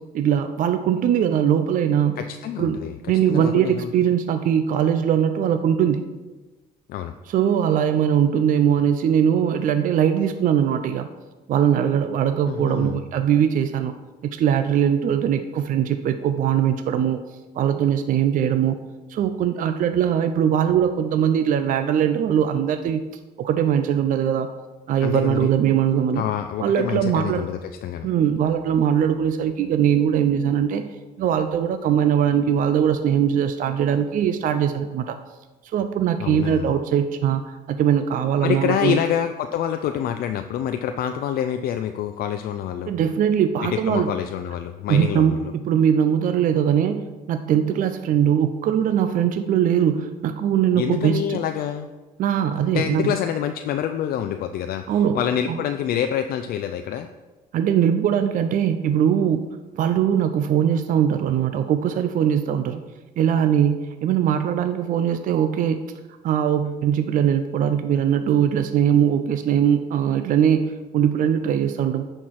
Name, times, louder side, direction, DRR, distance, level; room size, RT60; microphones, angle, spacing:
voice 1, 0.1-2.2 2.6-2.8 3.1-6.0 7.3-11.1 11.5-13.9 14.2-17.2 17.5-18.8 19.1-23.0 23.4-24.5 24.9-26.2 26.6-27.5 28.0-30.8 31.2-35.2 35.7-39.0 42.9-44.1 44.9-45.3 45.6-47.0 47.3-51.4 52.2-53.1 54.9-55.2 55.5-55.6 57.5-59.4 59.7-62.8 63.2-65.8 66.2-72.0, right 9 dB, 50° right, 8 dB, 0.5 m, -21 dB
voice 2, 2.2-3.9 6.9-7.1 12.5-13.0 25.0-25.5 26.1-28.1 36.2-36.8 38.4-42.9 43.6-45.5 50.7-51.9 52.7-57.1, left 10 dB, 60° left, 7 dB, 0.4 m, -27 dB
9.9 x 4.5 x 4.7 m, 1.2 s
cardioid pair, 110°, 17 cm